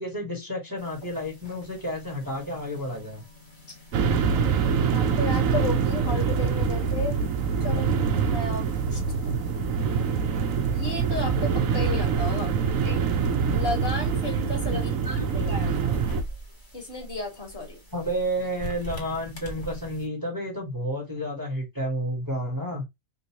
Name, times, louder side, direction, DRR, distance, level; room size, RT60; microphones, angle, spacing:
voice 1, 0.0-3.2 11.9-12.0 12.3-12.4 12.8-13.1 14.7-15.6 17.9-22.8, equal, 15° right, 1.4 m, -31 dB
sound 1, 0.8-20.1, equal, 20° left, 1.5 m, -44 dB
sound 2, 3.9-16.2, right 6 dB, 75° right, 1.1 m, -25 dB
voice 2, 4.9-7.2 7.6-7.9 8.3-9.4 10.7-12.5 13.5-15.0 15.3-15.9 16.7-17.8, left 2 dB, 45° left, 2.3 m, -33 dB
3.8 x 2.7 x 2.9 m
omnidirectional pair, 1.5 m